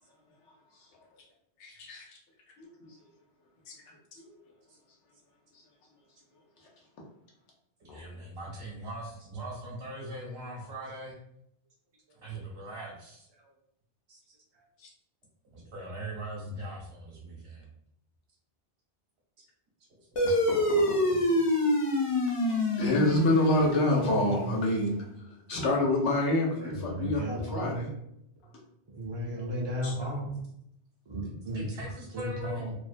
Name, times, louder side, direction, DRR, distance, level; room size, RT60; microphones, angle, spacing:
voice 1, 1.6-2.2 3.7-3.8 7.9-8.2 14.8-14.9 20.2-21.2 25.3-25.4 29.8-30.1, left 3 dB, 70° left, 0 dB, 0.8 m, -42 dB
voice 2, 2.6-2.9 4.2-4.3 22.7-25.0 25.5-27.9, left 1 dB, 90° left, -2 dB, 1.0 m, -26 dB
voice 3, 7.8-11.1 12.1-13.3 15.5-17.7 20.3-20.4 31.5-32.7, right 1 dB, 65° right, -4 dB, 0.9 m, -41 dB
sound 1, 20.2-25.0, left 1 dB, 50° left, 0.4 m, -27 dB
voice 4, 26.6-27.8 28.9-30.4 31.1-31.7 32.1-32.8, right 1 dB, 40° right, -2 dB, 0.3 m, -34 dB
2.5 x 2.0 x 2.5 m, 0.77 s
omnidirectional pair, 1.2 m